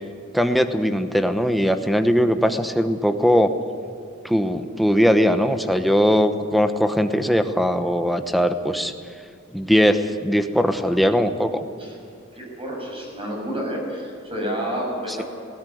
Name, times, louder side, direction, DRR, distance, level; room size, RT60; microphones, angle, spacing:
voice 1, 0.3-3.5 4.2-8.9 9.5-11.6, equal, ahead, 8 dB, 1.0 m, -20 dB
voice 2, 12.3-15.2, equal, 30° right, -1 dB, 6.5 m, -29 dB
18.5 x 17.0 x 9.5 m, 2.3 s
head